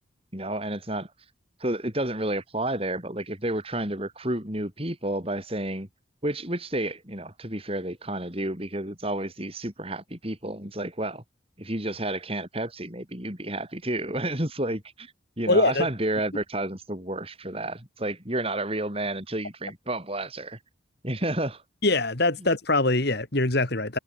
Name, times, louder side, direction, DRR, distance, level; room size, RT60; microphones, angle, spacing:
voice 1, 0.3-1.1 1.6-5.9 6.2-11.2 11.6-20.6 21.0-21.6, right 1 dB, 30° right, 4.8 m, -31 dB
voice 2, 15.5-15.9 21.8-24.0, left 2 dB, 55° left, 2.3 m, -23 dB
head